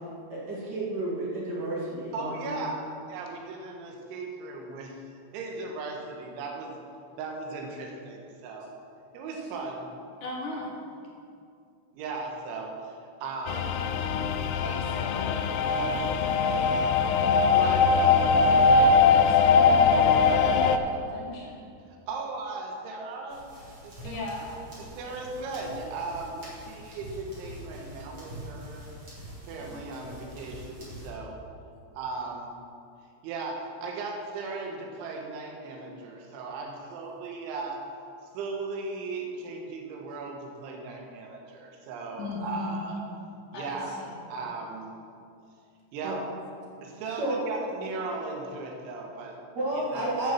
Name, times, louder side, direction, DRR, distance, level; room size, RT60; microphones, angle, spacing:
voice 1, 0.3-2.7 3.9-4.0 29.6-29.8 46.0-46.2 47.2-47.4 49.5-50.3, right 1 dB, 55° right, -5 dB, 1.1 m, -31 dB
voice 2, 2.1-4.9 5.3-6.7 7.2-8.7 9.1-9.9 11.9-13.0 13.2-13.8 17.5-17.9 22.1-23.4 24.0-24.2 24.8-28.8 29.4-31.4 32.0-32.5 33.2-37.8 38.3-43.0 43.5-44.0 44.3-45.0 45.9-46.2 46.8-49.4 49.7-50.2, right 3 dB, 80° right, 1 dB, 3.6 m, -37 dB
voice 3, 10.2-10.7 14.6-16.7 18.4-21.6 24.0-24.5 42.2-42.8 43.5-44.2, left 2 dB, 55° left, -3 dB, 2.4 m, -38 dB
sound 1, 13.5-20.8, left 5 dB, 80° left, 2.9 m, -21 dB
sound 2, 23.3-31.1, equal, 30° right, 3.2 m, -45 dB
9.5 x 7.8 x 7.1 m, 2.4 s
omnidirectional pair, 5.4 m